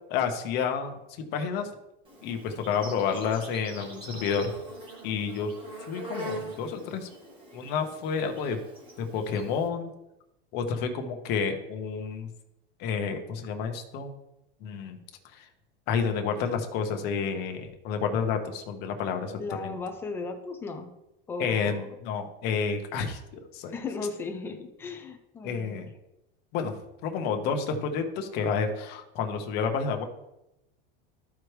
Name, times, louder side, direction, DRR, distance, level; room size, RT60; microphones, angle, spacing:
voice 1, 0.1-1.0 1.3-1.7 2.2-4.5 5.0-5.5 5.9-7.1 7.5-8.6 9.0-9.9 10.5-12.3 12.8-14.1 14.6-15.0 15.3-15.4 15.9-19.8 21.4-23.7 25.4-25.9 26.5-26.7 27.0-30.0, left 6 dB, 35° left, 5 dB, 1.0 m, -30 dB
Insect, 2.0-9.7, right 1 dB, 15° right, 1.7 m, -43 dB
voice 2, 19.4-20.9 21.3-22.0 23.7-25.8, left 4 dB, 10° left, 7 dB, 0.3 m, -36 dB
13.0 x 4.7 x 3.2 m, 0.90 s
supercardioid pair, 165°, 29 cm